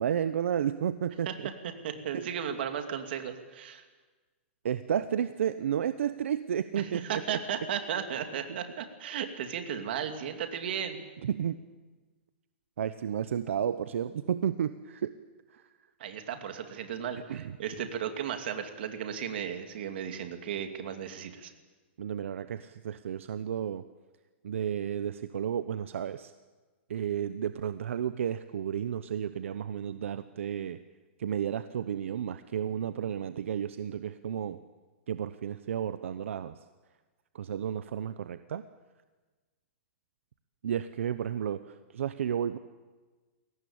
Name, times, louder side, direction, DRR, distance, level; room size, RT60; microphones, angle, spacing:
voice 1, 0.0-1.5 2.1-2.3 4.6-7.2 8.5-8.6 11.2-11.6 12.8-15.1 15.5-15.7 17.3-17.6 22.0-23.8 24.4-26.3 26.9-30.8 31.2-34.6 35.1-36.6 37.3-38.6 40.6-42.6, right 9 dB, 80° right, 12 dB, 0.9 m, -32 dB
voice 2, 1.8-3.8 6.8-11.0 16.0-21.5, right 8 dB, 50° right, 6 dB, 2.6 m, -35 dB
22.5 x 18.0 x 8.8 m, 1.3 s
hypercardioid pair, 175°, 7 cm